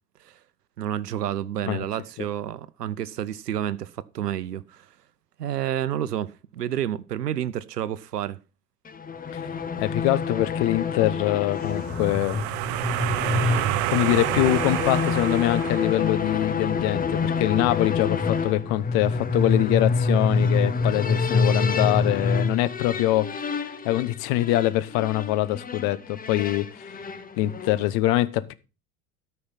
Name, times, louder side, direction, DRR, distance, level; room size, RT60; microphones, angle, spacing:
voice 1, 0.8-4.9 5.4-8.4, right 11 dB, 85° right, 0.8 m, -30 dB
sound 1, 8.9-27.9, left 4 dB, 20° left, 1.2 m, -27 dB
voice 2, 9.8-12.4 13.4-13.6 13.9-26.9 27.4-28.5, left 15 dB, 50° left, 1.1 m, -24 dB
sound 2, 11.7-16.4, right 15 dB, 50° right, 1.0 m, -28 dB
13.0 x 5.7 x 5.7 m
hypercardioid pair, 80°, 46 cm